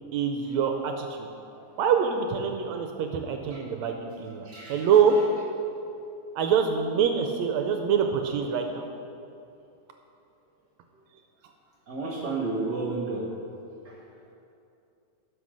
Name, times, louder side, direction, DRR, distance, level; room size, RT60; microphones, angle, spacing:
voice 1, 0.1-1.3 1.8-5.1 6.3-8.8, right 7 dB, 80° right, 4 dB, 1.7 m, -25 dB
voice 2, 4.5-4.8 11.9-13.2 13.9-14.0, right 3 dB, 55° right, -2 dB, 1.1 m, -31 dB
11.5 x 5.5 x 6.3 m, 2.7 s
omnidirectional pair, 3.6 m